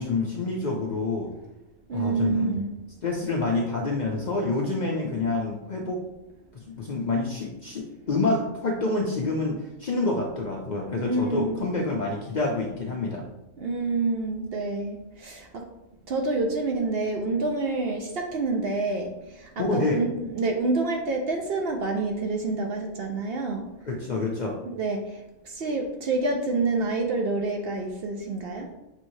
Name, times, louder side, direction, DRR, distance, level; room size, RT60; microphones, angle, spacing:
voice 1, 0.0-1.3 1.9-2.5 3.0-6.0 6.5-13.3 19.6-20.0 23.9-24.6, left 3 dB, 55° left, -2 dB, 0.5 m, -27 dB
voice 2, 1.9-2.7 11.0-11.7 13.6-15.6 16.1-23.7 24.7-28.7, right 3 dB, 60° right, 2 dB, 0.7 m, -28 dB
6.2 x 3.0 x 2.7 m, 0.96 s
omnidirectional pair, 1.3 m